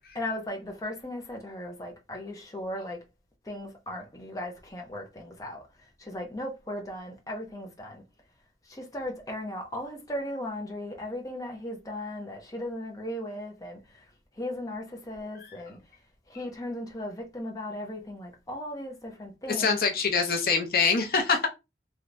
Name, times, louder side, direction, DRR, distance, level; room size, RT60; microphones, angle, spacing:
voice 1, 0.1-3.0 3.5-5.6 6.0-8.0 8.7-13.8 14.4-15.8 16.3-19.8, left 1 dB, 20° left, 0.6 m, -37 dB
voice 2, 19.5-21.5, left 5 dB, 55° left, 0.6 m, -25 dB
3.3 x 2.8 x 2.5 m
head